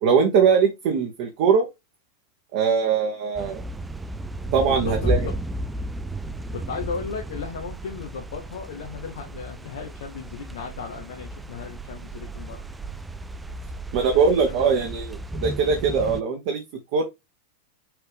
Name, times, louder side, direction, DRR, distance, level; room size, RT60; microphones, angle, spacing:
voice 1, 0.0-1.7 2.5-3.6 4.5-5.3 13.9-16.6 16.9-17.0, right 6 dB, 45° right, 0.8 m, -21 dB
sound 1, 3.4-16.2, right 1 dB, 10° right, 0.3 m, -33 dB
voice 2, 4.6-5.4 6.5-12.6 13.9-14.8, left 6 dB, 60° left, 0.8 m, -36 dB
5.8 x 2.7 x 3.4 m
figure-of-eight pair, 90°, 0 cm